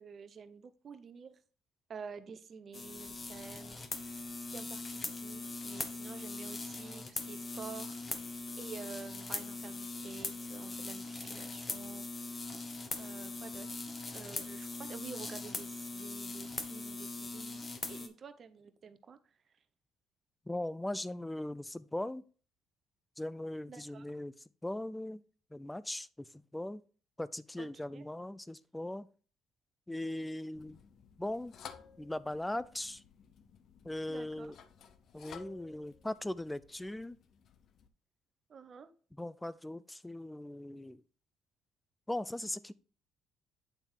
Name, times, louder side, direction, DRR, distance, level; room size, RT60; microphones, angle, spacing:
voice 1, 0.0-1.4 1.9-3.8 4.1-12.1 13.0-13.9 14.1-17.6 17.9-19.2 23.7-24.1 27.6-27.7 27.9-28.0 34.1-34.5 38.5-38.9, right 6 dB, 45° right, 0.8 m, -49 dB
sound 1, 2.7-18.1, left 3 dB, 30° left, 1.2 m, -41 dB
voice 2, 20.5-22.2 23.2-24.3 24.6-25.2 25.5-26.3 26.5-26.8 27.2-29.1 29.9-30.8 31.2-31.5 32.0-33.0 33.8-34.5 35.1-37.2 39.2-41.0 42.1-42.7, left 1 dB, 10° left, 0.5 m, -39 dB
sound 2, 30.5-37.9, left 7 dB, 60° left, 0.7 m, -55 dB
9.0 x 3.6 x 4.5 m
supercardioid pair, 80°, 0 cm